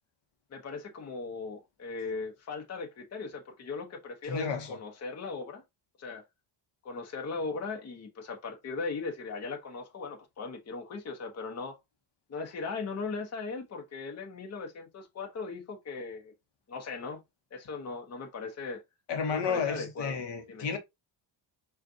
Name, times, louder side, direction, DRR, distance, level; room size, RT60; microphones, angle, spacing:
voice 1, 0.5-5.6 6.0-6.2 6.8-11.8 12.3-16.3 16.7-17.2 17.5-18.8 19.3-20.2 20.5-20.7, left 4 dB, 30° left, 0.9 m, -38 dB
voice 2, 4.2-4.8 19.1-20.8, left 6 dB, 55° left, 1.0 m, -32 dB
5.1 x 2.5 x 2.7 m
cardioid pair, 120°, 49 cm